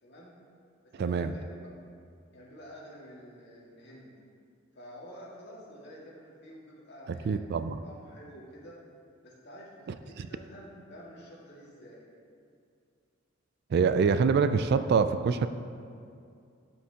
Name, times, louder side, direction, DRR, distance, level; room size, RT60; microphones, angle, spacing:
voice 1, 0.0-0.3 0.8-1.7 2.3-4.1 4.8-7.4 7.8-8.8 9.2-12.1, equal, 60° left, -5 dB, 2.0 m, -49 dB
voice 2, 1.0-1.3 7.3-7.8 10.2-10.3 13.7-15.5, right 5 dB, 55° right, 11 dB, 0.3 m, -25 dB
12.0 x 5.8 x 2.8 m, 2.4 s
head